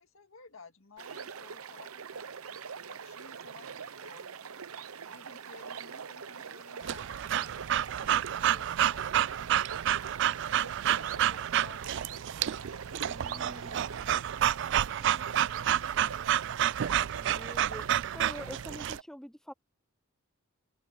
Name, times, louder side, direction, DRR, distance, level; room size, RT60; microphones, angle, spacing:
voice 1, 0.0-4.4 5.0-9.4 10.1-12.4 13.1-16.5, left 4 dB, 65° left, 2.1 m, -55 dB
sound 1, 1.0-19.0, right 6 dB, 80° right, 0.8 m, -43 dB
Breathing / Dog, 6.8-19.0, right 10 dB, 55° right, 0.3 m, -29 dB
voice 2, 13.1-13.9 17.2-17.9 18.1-19.5, equal, ahead, 0.5 m, -45 dB
open air
head